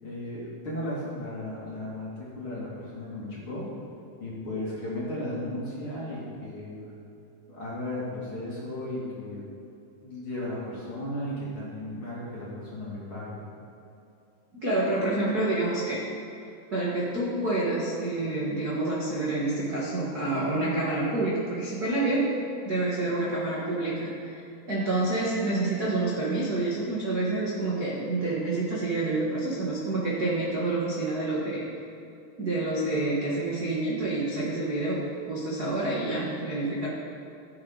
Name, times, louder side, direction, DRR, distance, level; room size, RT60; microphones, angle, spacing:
voice 1, 0.0-3.6 4.2-6.9 7.5-9.4 10.0-13.4, left 1 dB, 35° left, -7 dB, 2.8 m, -35 dB
voice 2, 14.6-16.1 16.7-22.4 22.6-24.4 24.7-31.6 32.4-35.0 35.3-36.9, right 2 dB, 90° right, -7 dB, 0.8 m, -28 dB
15.5 x 8.7 x 4.0 m, 2.7 s
omnidirectional pair, 4.7 m